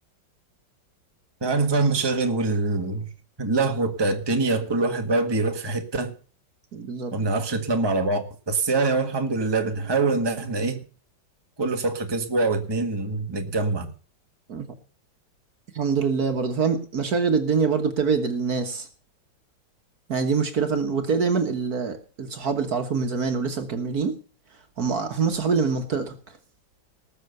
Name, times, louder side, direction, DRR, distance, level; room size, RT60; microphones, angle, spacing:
voice 1, 1.4-3.1 3.4-6.1 7.1-10.8 11.6-13.9, right 3 dB, 15° right, 1.5 m, -24 dB
voice 2, 6.7-7.1 14.5-14.7 15.8-18.9 20.1-24.1 24.8-26.2, right 5 dB, 55° right, 1.7 m, -25 dB
19.0 x 7.0 x 6.7 m
omnidirectional pair, 2.0 m